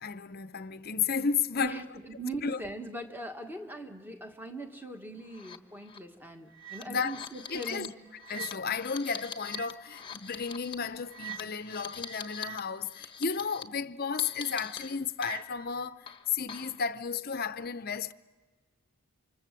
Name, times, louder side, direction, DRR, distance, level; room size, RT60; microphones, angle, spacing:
voice 1, 0.0-1.8 2.4-2.6 6.9-7.1 7.5-7.9 8.1-18.1, left 6 dB, 45° left, 0.7 m, -33 dB
voice 2, 1.6-7.9, right 2 dB, 10° right, 1.7 m, -40 dB
sound 1, 5.3-5.6 5.9-6.0 6.5-12.6 12.9-13.6 14.2-15.7 16.1-16.8, left 2 dB, 25° left, 1.1 m, -43 dB
28.5 x 25.5 x 7.5 m
head